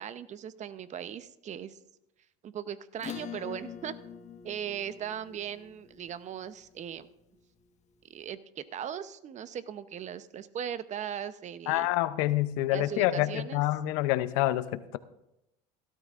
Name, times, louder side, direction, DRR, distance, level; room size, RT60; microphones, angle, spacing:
voice 1, 0.0-1.8 2.4-3.9 4.4-7.1 8.1-11.9 12.7-13.6, right 9 dB, 40° right, 14 dB, 0.7 m, -38 dB
Acoustic guitar / Strum, 3.0-7.9, left 8 dB, 40° left, 1.4 m, -45 dB
voice 2, 11.7-15.0, left 15 dB, 80° left, 14 dB, 0.6 m, -27 dB
17.0 x 12.5 x 2.5 m, 0.86 s
supercardioid pair, 100°, 19 cm